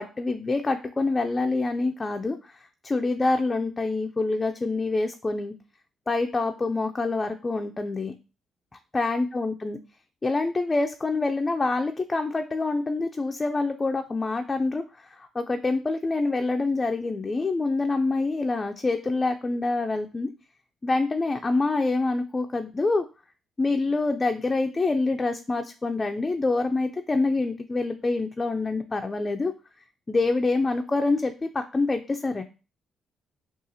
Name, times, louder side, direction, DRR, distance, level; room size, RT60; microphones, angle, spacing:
voice 1, 0.0-2.6 2.8-5.5 6.1-8.1 8.9-9.8 10.2-20.3 20.8-23.0 23.6-29.5 30.1-32.4, left 3 dB, 25° left, 5 dB, 0.4 m, -26 dB
6.4 x 2.4 x 2.7 m, 0.33 s
cardioid pair, 90°, 0 cm